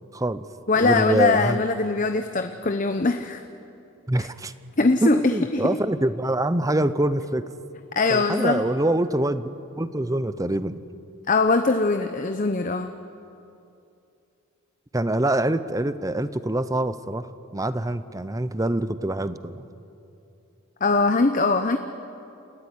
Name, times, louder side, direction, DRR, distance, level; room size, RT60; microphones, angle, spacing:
voice 1, 0.1-0.5 0.8-1.6 4.1-4.5 5.0-7.5 8.1-9.5 9.8-10.8 14.9-19.6, right 1 dB, 15° right, 14 dB, 0.7 m, -25 dB
voice 2, 0.7-3.4 4.2-4.3 4.8-5.7 8.0-8.6 11.3-12.9 20.8-21.8, left 3 dB, 40° left, 7 dB, 0.8 m, -22 dB
29.0 x 15.0 x 9.9 m, 2.7 s
head